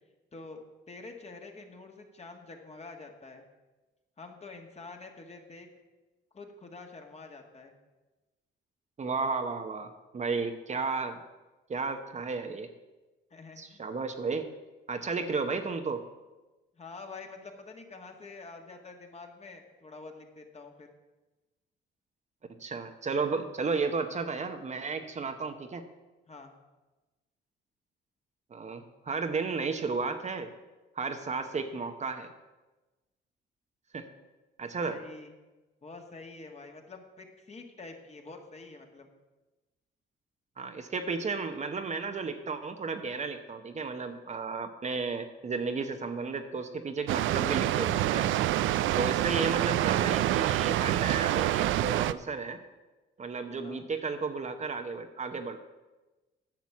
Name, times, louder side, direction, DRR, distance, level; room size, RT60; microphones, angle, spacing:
voice 1, 0.3-3.4 4.2-5.7 6.3-7.7 13.3-13.8 16.8-20.9 26.3-26.5 34.8-35.3 35.8-39.1 48.8-49.0 53.6-53.8, left 3 dB, 30° left, 3 dB, 1.7 m, -47 dB
voice 2, 9.0-9.9 10.1-11.2 11.7-12.7 13.6-14.5 14.9-16.0 22.6-25.8 28.5-30.5 31.0-32.3 33.9-34.1 34.6-35.0 40.6-48.3 48.9-52.6 53.2-55.6, right 4 dB, 35° right, 7 dB, 0.9 m, -33 dB
Water, 47.1-52.1, right 13 dB, 80° right, 0.4 m, -27 dB
10.5 x 6.2 x 7.2 m, 1.1 s
cardioid pair, 90°, 20 cm